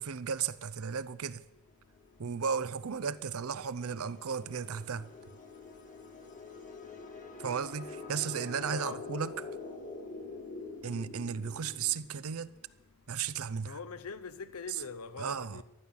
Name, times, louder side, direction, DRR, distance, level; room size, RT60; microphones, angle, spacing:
voice 1, 0.0-1.4 2.2-5.1 7.4-9.5 10.8-12.5 13.1-13.8 14.7-14.8 15.2-15.6, right 6 dB, 75° right, 0.6 m, -35 dB
sound 1, 2.0-12.5, left 4 dB, 35° left, 1.5 m, -46 dB
voice 2, 13.7-15.6, left 4 dB, 85° left, 0.8 m, -42 dB
14.0 x 12.0 x 7.0 m
head